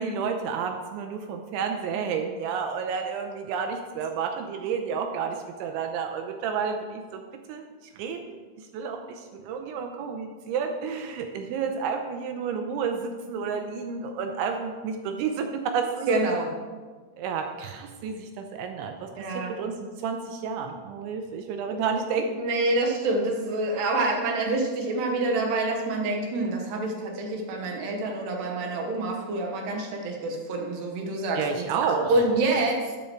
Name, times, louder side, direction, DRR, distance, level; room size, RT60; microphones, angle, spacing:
voice 1, 0.0-7.2 7.5-7.7 8.0-8.4 8.7-16.1 17.2-22.5 31.4-32.1, right 6 dB, 85° right, 5 dB, 2.8 m, -30 dB
voice 2, 16.1-16.5 19.2-19.5 21.7-21.8 22.2-33.0, right 2 dB, 65° right, 1 dB, 3.0 m, -27 dB
13.5 x 8.5 x 4.5 m, 1.4 s
omnidirectional pair, 5.9 m